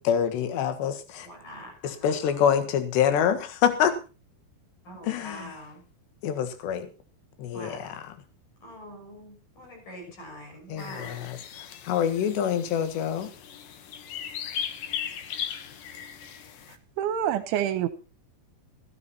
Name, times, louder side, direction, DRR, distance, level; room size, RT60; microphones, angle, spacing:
voice 1, 0.0-1.3 1.8-4.0 5.0-5.6 6.2-6.9 7.4-8.2 10.7-13.3, left 8 dB, 65° left, 9 dB, 3.4 m, -26 dB
voice 2, 1.2-2.4 4.8-5.8 7.5-7.8 8.6-11.3, equal, 40° left, -1 dB, 7.9 m, -44 dB
sound 1, 10.8-16.8, left 9 dB, 90° left, 1.9 m, -38 dB
voice 3, 16.7-17.9, right 10 dB, 80° right, 11 dB, 2.9 m, -27 dB
15.0 x 13.5 x 4.2 m, 0.33 s
omnidirectional pair, 5.9 m